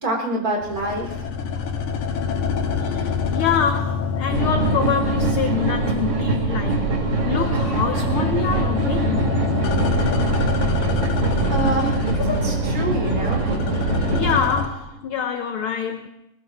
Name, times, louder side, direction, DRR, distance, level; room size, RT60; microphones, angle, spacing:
voice 1, 0.0-1.1 11.5-13.4, right 1 dB, 30° right, 4.0 m, -26 dB
sound 1, 0.6-6.5 6.8-14.7, left 5 dB, 90° left, 2.8 m, -27 dB
voice 2, 2.8-6.9 7.2-9.5 13.2-13.3 13.7-16.1, left 7 dB, 70° left, 1.3 m, -26 dB
sound 2, 4.3-14.4, right 3 dB, 50° right, 3.6 m, -23 dB
21.0 x 20.0 x 3.1 m
omnidirectional pair, 3.4 m